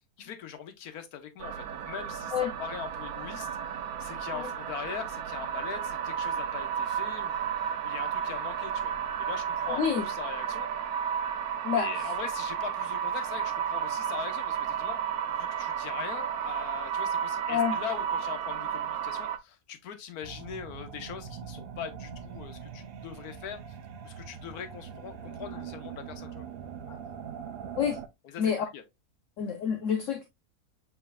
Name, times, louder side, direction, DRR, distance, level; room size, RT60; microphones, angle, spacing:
voice 1, 0.2-3.5 4.0-10.7 11.7-23.6 24.0-26.4 28.2-28.8, left 8 dB, 90° left, 1.3 m, -41 dB
sound 1, 1.4-19.4, right 8 dB, 80° right, 1.1 m, -32 dB
voice 2, 9.7-10.1 11.6-11.9 17.5-17.8 26.9-27.0 27.8-28.0 28.4-28.6 29.4-30.2, left 7 dB, 65° left, 1.0 m, -28 dB
Horror Background Sound or Music, 20.2-28.1, right 7 dB, 65° right, 0.5 m, -42 dB
6.8 x 3.3 x 2.2 m
omnidirectional pair, 1.5 m